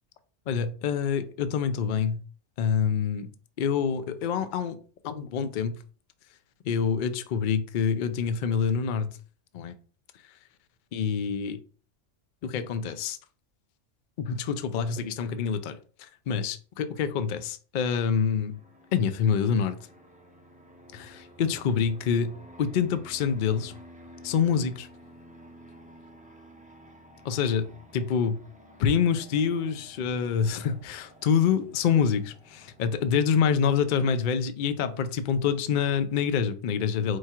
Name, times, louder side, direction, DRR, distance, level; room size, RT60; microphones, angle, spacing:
voice 1, 0.5-2.2 2.6-3.3 3.6-4.8 5.0-5.8 6.6-9.2 9.5-9.7 10.2-10.3 10.9-11.6 12.4-13.2 14.2-18.6 18.9-19.8 20.9-23.7 24.2-24.9 27.2-27.7 27.9-28.4 28.8-37.2, left 7 dB, 60° left, 0.5 m, -26 dB
Fixed-wing aircraft airplane, 18.5-33.7, right 1 dB, 10° right, 0.4 m, -52 dB
4.7 x 2.4 x 4.3 m
omnidirectional pair, 1.3 m